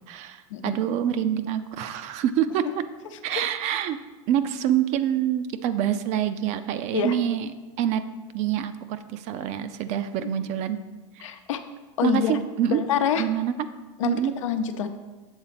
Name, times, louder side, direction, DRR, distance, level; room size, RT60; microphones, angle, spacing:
voice 1, 0.1-2.8 3.2-4.0 4.3-7.5 7.8-8.0 8.3-10.8 11.2-11.3 12.0-12.8 13.2-13.5 14.0-14.3, right 10 dB, 45° right, 11 dB, 0.5 m, -26 dB
voice 2, 11.2-11.6 12.0-12.4 12.7-13.2 14.0-14.2 14.4-14.9, left 8 dB, 80° left, 8 dB, 0.7 m, -26 dB
7.2 x 3.9 x 5.9 m, 1.2 s
hypercardioid pair, 115°, 16 cm